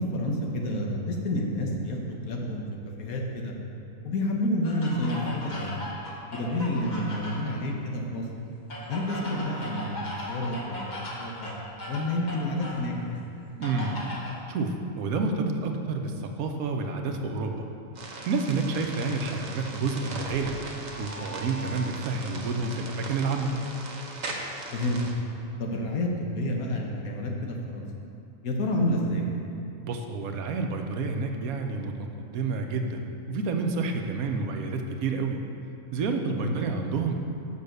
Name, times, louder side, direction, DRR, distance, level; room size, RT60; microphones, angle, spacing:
voice 1, 0.0-2.6 3.0-3.5 4.0-5.8 6.3-8.3 8.9-10.0 10.3-10.9 11.2-11.5 11.9-13.2 24.7-25.0 25.6-27.9 28.4-29.3 36.4-36.7, left 1 dB, 85° left, 0 dB, 1.5 m, -29 dB
sound 1, 4.6-7.6 8.7-12.9 13.6-14.4, equal, 35° left, 1.1 m, -38 dB
voice 2, 13.6-14.0 14.5-17.6 18.3-20.6 21.0-23.5 29.8-31.9 32.2-33.0 33.3-35.4 35.9-37.1, right 4 dB, 85° right, 4 dB, 1.2 m, -29 dB
sound 2, 18.0-25.1, right 2 dB, 40° right, 0.8 m, -39 dB
sound 3, 20.3-22.4, right 1 dB, 60° right, 0.3 m, -44 dB
6.9 x 5.6 x 6.6 m, 2.6 s
omnidirectional pair, 1.5 m